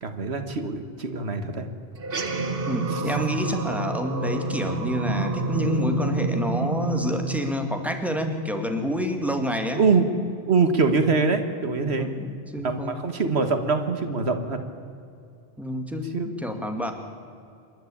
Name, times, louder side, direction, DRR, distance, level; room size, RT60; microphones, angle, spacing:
voice 1, 0.0-1.7 2.9-3.0 9.8-12.1 12.6-14.6 16.1-16.3, right 4 dB, 80° right, 7 dB, 1.7 m, -24 dB
sound 1, 2.0-8.7, right 3 dB, 60° right, 1.4 m, -28 dB
voice 2, 2.7-9.8 12.0-13.0 15.6-16.9, equal, ahead, 4 dB, 2.0 m, -28 dB
27.0 x 11.5 x 8.6 m, 2.5 s
omnidirectional pair, 1.1 m